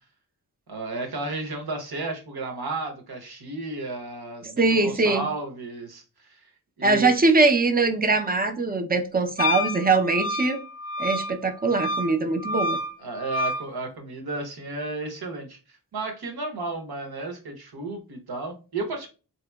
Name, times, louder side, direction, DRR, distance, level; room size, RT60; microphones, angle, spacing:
voice 1, 0.7-6.5 6.8-7.1 13.0-19.1, right 3 dB, 70° right, 4 dB, 1.0 m, -33 dB
voice 2, 4.4-5.3 6.8-10.6 11.0-12.8, right 3 dB, 25° right, 7 dB, 0.5 m, -22 dB
Wind instrument woodwind instrument, 9.4-13.7, left 1 dB, 20° left, 0.5 m, -29 dB
3.3 x 2.9 x 2.2 m, 0.33 s
cardioid pair, 60°, 39 cm